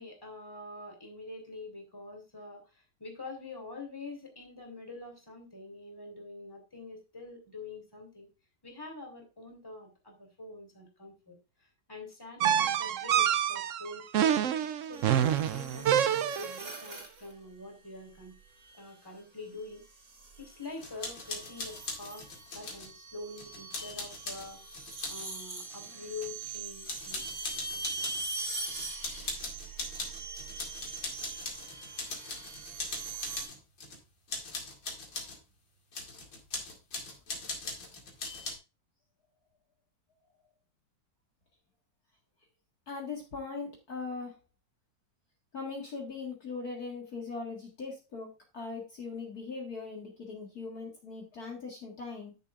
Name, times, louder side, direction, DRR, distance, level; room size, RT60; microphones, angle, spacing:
voice 1, 0.0-8.3 8.6-11.4 11.9-14.4 14.8-18.4 18.7-19.8 20.4-22.3 22.5-24.6 25.1-27.2, left 3 dB, 10° left, 2 dB, 2.8 m, -45 dB
sound 1, 12.4-16.7, right 9 dB, 75° right, 0.7 m, -27 dB
sound 2, 14.9-17.3 18.7-19.1 19.9-33.4, right 3 dB, 50° right, 3.2 m, -42 dB
sound 3, 20.8-22.9 23.4-25.3 25.7-26.6 26.9-28.2 28.6-34.0 34.3-35.4 35.9-38.5, left 3 dB, 80° left, 3.0 m, -40 dB
voice 2, 42.9-44.4 45.5-52.4, left 4 dB, 55° left, 0 dB, 2.2 m, -40 dB
13.0 x 6.8 x 2.5 m, 0.28 s
omnidirectional pair, 2.0 m